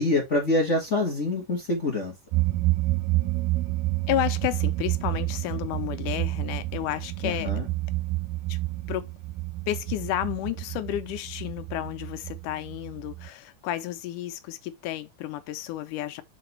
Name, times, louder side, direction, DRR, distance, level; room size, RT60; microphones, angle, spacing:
voice 1, 0.0-2.1 7.2-7.7, left 2 dB, 40° left, 1.1 m, -25 dB
sound 1, 2.3-13.3, right 19 dB, 85° right, 2.4 m, -29 dB
voice 2, 4.1-7.5 8.5-8.6 8.9-9.1 9.7-16.2, left 13 dB, 85° left, 2.2 m, -31 dB
6.9 x 4.0 x 4.4 m
omnidirectional pair, 3.6 m